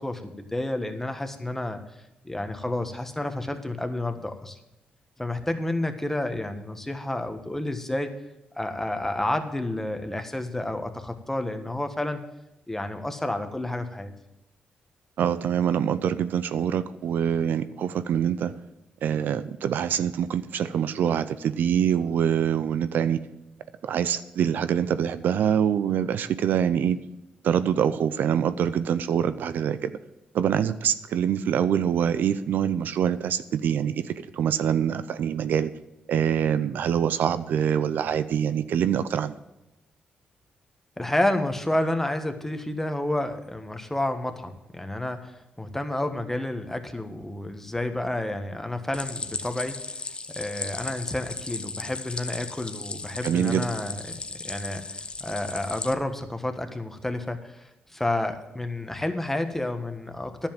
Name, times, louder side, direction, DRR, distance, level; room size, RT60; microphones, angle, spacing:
voice 1, 0.0-1.8 2.2-4.6 5.2-8.1 8.5-12.2 12.7-14.1 41.0-50.0 50.3-60.5, left 1 dB, 10° left, 7 dB, 1.4 m, -30 dB
voice 2, 15.2-18.5 19.0-23.2 23.8-27.0 27.4-30.0 30.3-35.7 36.1-39.3 53.2-53.7, right 8 dB, 75° right, 13 dB, 0.5 m, -25 dB
Stream, 48.9-55.9, left 3 dB, 30° left, 0.9 m, -36 dB
10.5 x 7.3 x 7.5 m, 0.93 s
supercardioid pair, 60°, 3 cm